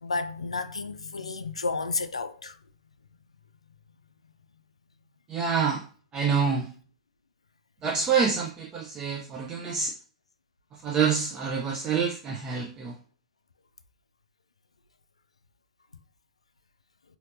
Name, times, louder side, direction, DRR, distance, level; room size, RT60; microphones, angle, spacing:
voice 1, 0.0-2.6, left 3 dB, 80° left, 0.3 m, -31 dB
voice 2, 5.3-5.8 6.1-6.7 7.8-9.9 10.8-13.0, right 6 dB, 25° right, 0.5 m, -27 dB
4.2 x 2.8 x 2.6 m
figure-of-eight pair, 95°, 3 cm